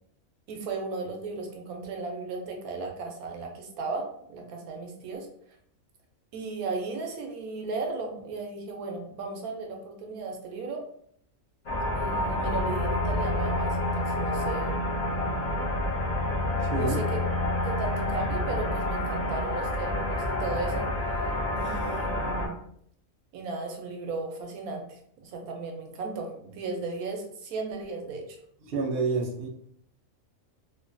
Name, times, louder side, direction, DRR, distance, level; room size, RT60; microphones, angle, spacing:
voice 1, 0.5-5.3 6.3-10.8 12.0-14.8 16.7-17.2 17.6-21.2 21.6-22.6 23.3-28.4, right 3 dB, 85° right, 2 dB, 1.1 m, -35 dB
sound 1, 11.7-22.5, left 1 dB, 80° left, 0.3 m, -28 dB
voice 2, 16.6-17.0 28.7-29.5, right 4 dB, 60° right, 1 dB, 0.6 m, -28 dB
3.0 x 2.2 x 2.5 m, 0.66 s
omnidirectional pair, 1.5 m